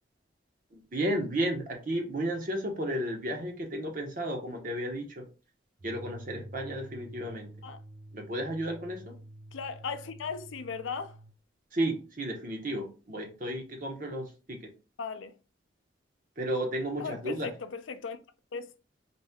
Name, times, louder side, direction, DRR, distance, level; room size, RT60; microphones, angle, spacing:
voice 1, 0.7-5.3 5.8-7.5 8.1-9.1 11.7-14.7 16.4-17.5, right 1 dB, 45° right, 0.9 m, -33 dB
sound 1, 5.8-11.4, right 1 dB, 25° right, 0.3 m, -48 dB
voice 2, 9.5-11.2 15.0-15.3 17.0-18.2 18.5-18.7, left 5 dB, 85° left, 0.5 m, -37 dB
4.2 x 2.3 x 3.5 m
head